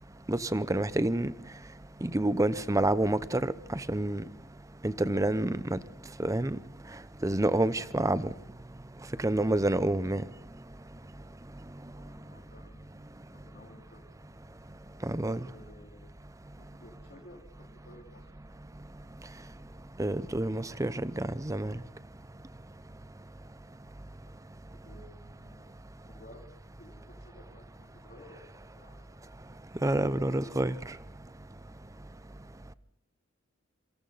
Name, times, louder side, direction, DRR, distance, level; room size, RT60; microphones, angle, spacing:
voice 1, 0.3-1.3 2.0-3.4 3.7-4.2 4.8-5.8 6.2-6.6 7.2-8.3 9.2-10.2 15.0-15.4 20.0-21.8 29.8-30.7, right 1 dB, 15° right, 0.7 m, -28 dB
voice 2, 11.9-14.0 15.2-16.2 16.6-18.4 24.8-25.7 26.1-26.5 26.8-29.3, left 1 dB, 50° left, 3.0 m, -55 dB
27.5 x 24.0 x 4.1 m
head